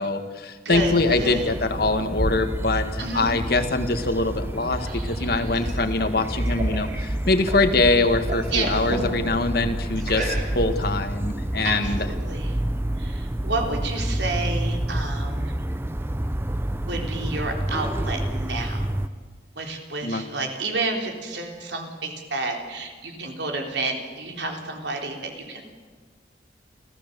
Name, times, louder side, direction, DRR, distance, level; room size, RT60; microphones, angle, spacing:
voice 1, 0.0-12.1 20.0-20.2, left 3 dB, 60° left, 8 dB, 1.7 m, -23 dB
sound 1, 0.7-19.1, right 1 dB, 15° right, 0.7 m, -28 dB
voice 2, 0.7-1.5 3.0-3.3 8.5-8.8 11.6-12.5 13.0-15.5 16.8-19.0 19.6-25.7, right 3 dB, 75° right, 2 dB, 3.7 m, -30 dB
sound 2, 4.3-7.7 8.0-9.1 10.0-10.8, right 2 dB, 45° right, 4.5 m, -34 dB
29.0 x 15.0 x 6.9 m, 1.5 s
head